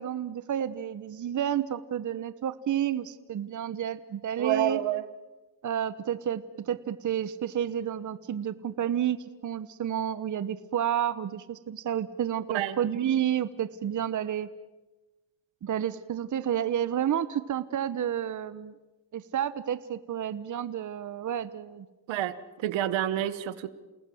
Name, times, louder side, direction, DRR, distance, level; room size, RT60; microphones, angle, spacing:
voice 1, 0.0-4.8 5.6-9.2 9.4-14.5 15.6-18.7 19.1-21.9, right 10 dB, 40° right, 13 dB, 1.1 m, -30 dB
voice 2, 4.4-5.1 12.5-12.8 22.1-23.7, right 12 dB, 75° right, 14 dB, 1.6 m, -29 dB
29.0 x 19.0 x 7.9 m, 1.2 s
cardioid pair, 100°, 45 cm